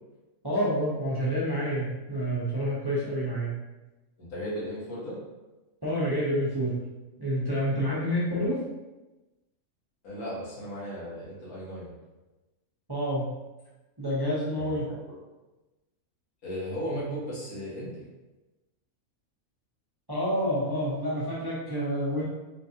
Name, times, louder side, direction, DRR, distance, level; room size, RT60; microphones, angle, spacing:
voice 1, 0.4-3.5 5.8-6.7 7.2-8.6 12.9-13.3 14.0-14.9 20.1-22.2, equal, 20° right, -8 dB, 0.7 m, -28 dB
voice 2, 4.2-5.2 10.0-11.9 14.5-15.2 16.4-18.0, equal, 85° left, -8 dB, 2.1 m, -36 dB
4.0 x 3.8 x 2.8 m, 1.1 s
omnidirectional pair, 1.5 m